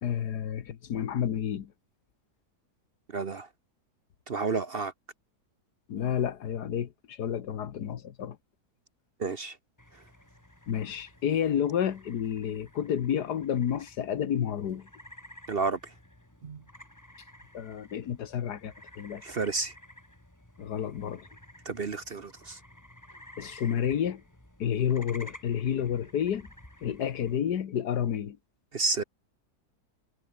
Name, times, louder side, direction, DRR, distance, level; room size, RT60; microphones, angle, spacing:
voice 1, 0.0-1.7 5.9-8.4 10.7-14.9 17.5-19.2 20.6-21.3 23.4-24.2 24.6-26.5 26.8-28.4, left 9 dB, 75° left, 1.8 m, -30 dB
voice 2, 3.1-3.5 4.3-4.9 9.2-9.6 15.5-15.9 16.4-16.6 19.2-19.7 21.6-22.6 28.7-29.0, right 4 dB, 40° right, 1.0 m, -31 dB
sound 1, 9.8-27.4, left 1 dB, 10° left, 2.9 m, -52 dB
omnidirectional pair, 1.7 m